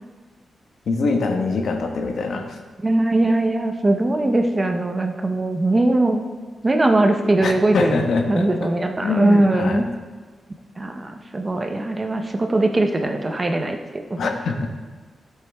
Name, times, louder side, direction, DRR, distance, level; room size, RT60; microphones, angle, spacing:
voice 1, 0.9-2.6 7.4-8.5 9.0-9.9 14.2-14.7, left 4 dB, 65° left, 4 dB, 1.1 m, -23 dB
voice 2, 2.8-6.2 6.6-9.8 10.8-14.2, right 2 dB, 20° right, 5 dB, 0.7 m, -20 dB
14.0 x 8.0 x 3.5 m, 1.4 s
wide cardioid pair, 170°, 0 cm